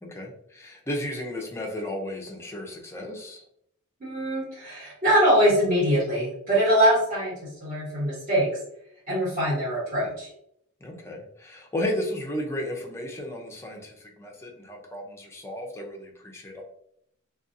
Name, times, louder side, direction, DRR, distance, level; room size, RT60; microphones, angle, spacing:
voice 1, 0.0-3.4 10.8-16.6, left 1 dB, 10° left, 0 dB, 0.4 m, -34 dB
voice 2, 4.0-8.5 9.1-10.3, equal, 40° right, -11 dB, 1.2 m, -23 dB
2.5 x 2.3 x 2.5 m, 0.72 s
head